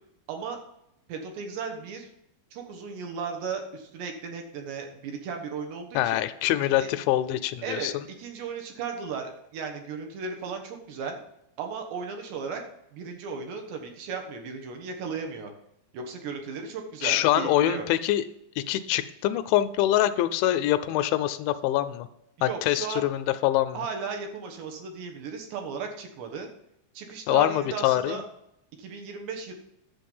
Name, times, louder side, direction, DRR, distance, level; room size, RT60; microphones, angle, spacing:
voice 1, 0.3-0.6 1.1-2.1 2.5-6.2 6.6-6.9 7.6-7.9 8.2-11.2 11.6-12.6 12.9-15.5 15.9-17.9 22.4-23.1 23.7-26.5 26.9-28.2 28.8-29.5, right 5 dB, 70° right, 4 dB, 3.2 m, -35 dB
voice 2, 6.0-7.9 17.0-18.2 18.6-22.1 22.4-23.8 27.3-28.2, left 13 dB, 85° left, 11 dB, 2.8 m, -24 dB
11.0 x 7.2 x 5.4 m, 0.82 s
omnidirectional pair, 5.4 m